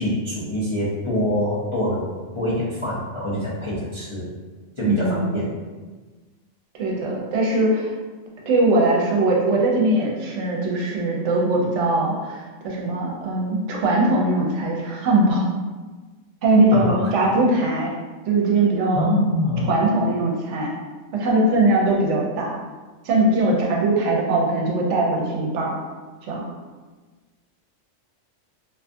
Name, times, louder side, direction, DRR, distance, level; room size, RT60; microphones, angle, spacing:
voice 1, 0.0-2.1 2.3-4.3 4.8-5.5 16.7-17.1 18.9-19.7, left 1 dB, 50° left, -10 dB, 0.3 m, -25 dB
voice 2, 4.8-5.4 6.7-7.9 8.5-15.5 16.4-17.9 18.3-19.1 19.7-20.7 21.1-22.6 23.0-25.8 26.2-26.5, right 2 dB, 75° right, -2 dB, 0.9 m, -21 dB
2.6 x 2.3 x 2.5 m, 1.3 s
omnidirectional pair, 1.3 m